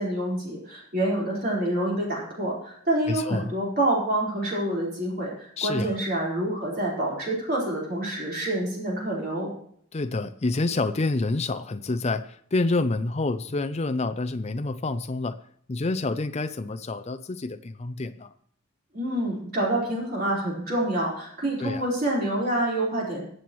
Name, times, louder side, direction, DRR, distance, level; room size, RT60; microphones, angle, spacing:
voice 1, 0.0-9.5 18.9-23.2, right 1 dB, 45° right, -5 dB, 4.4 m, -27 dB
voice 2, 3.1-3.5 5.6-6.0 9.9-15.4 15.7-18.3 21.6-21.9, left 2 dB, 30° left, 9 dB, 0.5 m, -28 dB
22.5 x 7.7 x 3.1 m, 0.63 s
head